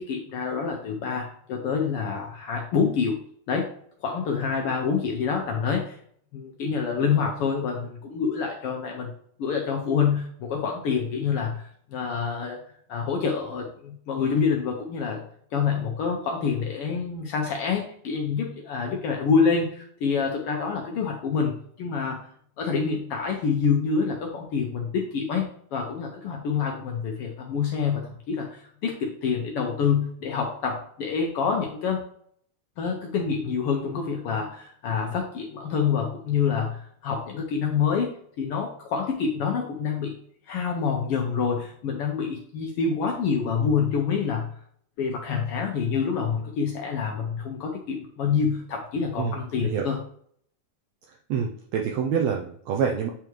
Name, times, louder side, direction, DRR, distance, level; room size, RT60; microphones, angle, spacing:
voice 1, 0.0-3.2 3.5-3.7 4.0-6.0 6.3-9.1 9.4-12.6 12.9-15.2 15.5-22.3 22.6-32.1 32.8-40.2 40.5-44.5 45.0-50.0, left 6 dB, 80° left, 2 dB, 1.3 m, -27 dB
voice 2, 51.3-53.1, right 7 dB, 75° right, 0 dB, 1.7 m, -26 dB
9.0 x 3.5 x 3.1 m, 0.62 s
omnidirectional pair, 3.5 m